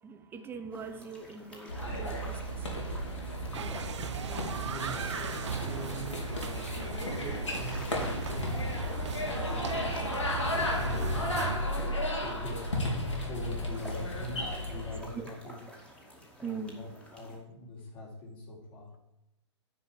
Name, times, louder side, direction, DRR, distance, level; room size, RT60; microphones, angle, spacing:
voice 1, 0.0-2.9 3.6-3.9 4.3-4.5 15.1-15.3 16.4-16.8, right 5 dB, 15° right, 7 dB, 0.9 m, -42 dB
sound 1, 0.7-17.4, equal, 5° left, 2.2 m, -50 dB
sound 2, 1.7-15.0, left 1 dB, 85° left, 3.3 m, -34 dB
sound 3, 3.5-11.6, right 7 dB, 75° right, 0.6 m, -37 dB
voice 2, 4.6-6.7 7.1-8.6 9.0-9.9 10.4-15.5 16.4-18.9, equal, 35° left, -3 dB, 4.1 m, -43 dB
9.7 x 5.3 x 7.5 m, 0.89 s
hypercardioid pair, 125°, 15 cm